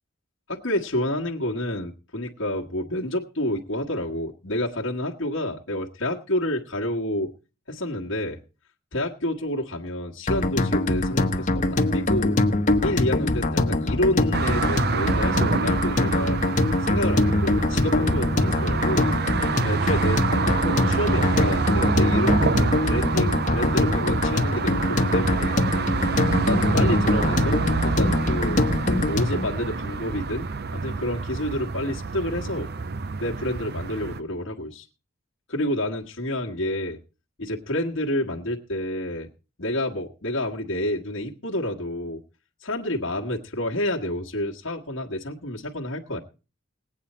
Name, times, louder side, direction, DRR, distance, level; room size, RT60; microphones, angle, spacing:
voice 1, 0.5-7.3 7.7-8.4 8.9-12.4 12.8-16.4 16.8-19.1 19.6-25.6 26.5-28.6 29.0-30.5 30.7-32.7 33.2-34.9 35.5-37.0 37.4-39.3 39.6-42.2 42.6-46.2, left 1 dB, 75° left, -1 dB, 1.5 m, -29 dB
sound 1, 10.3-29.5, left 2 dB, 40° left, 1.1 m, -23 dB
sound 2, 14.3-34.2, right 4 dB, 55° right, 0.7 m, -27 dB
19.5 x 8.6 x 4.3 m, 0.34 s
head